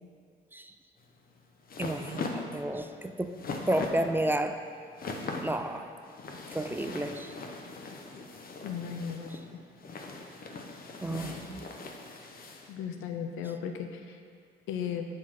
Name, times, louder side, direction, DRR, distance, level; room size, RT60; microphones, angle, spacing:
sound 1, 1.0-12.7, left 3 dB, 45° left, 0.7 m, -40 dB
voice 1, 1.8-3.4 3.7-4.6 5.4-5.9 6.5-7.3 11.0-11.7, right 1 dB, 10° right, 7 dB, 0.3 m, -31 dB
voice 2, 8.6-9.6 11.1-11.5 12.7-14.2 14.7-15.1, left 7 dB, 85° left, 5 dB, 0.5 m, -36 dB
7.3 x 3.1 x 5.7 m, 2.2 s
cardioid pair, 90°, 20 cm